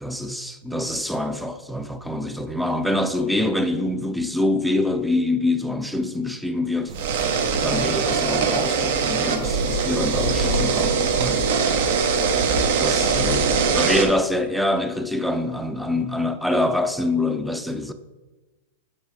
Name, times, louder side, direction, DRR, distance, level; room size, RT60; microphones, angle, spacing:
voice 1, 0.0-6.9 7.6-11.5 12.8-17.9, left 1 dB, ahead, 0.5 m, -25 dB
sound 1, 6.9-14.1, right 5 dB, 60° right, 1.1 m, -22 dB
6.4 x 4.8 x 5.0 m
hypercardioid pair, 105°, 0 cm